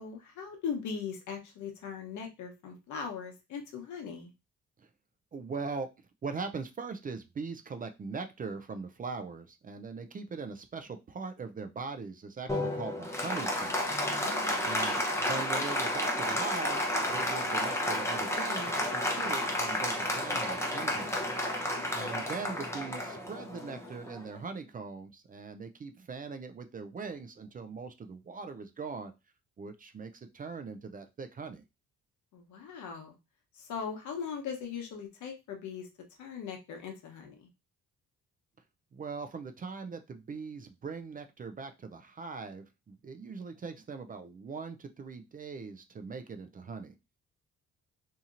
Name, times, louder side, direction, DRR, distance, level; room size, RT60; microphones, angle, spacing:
voice 1, 0.0-4.3 14.2-14.7 21.8-22.3 32.3-33.2 33.5-35.9 36.2-37.5, left 6 dB, 75° left, 3 dB, 1.0 m, -40 dB
voice 2, 5.3-5.9 6.2-13.8 14.6-16.8 17.1-21.4 21.9-29.1 29.6-31.6 38.9-46.9, right 4 dB, 30° right, 8 dB, 0.4 m, -41 dB
Applause, 12.5-24.4, left 1 dB, 10° left, 0.8 m, -31 dB
2.8 x 2.7 x 2.5 m, 0.25 s
cardioid pair, 90°, 30 cm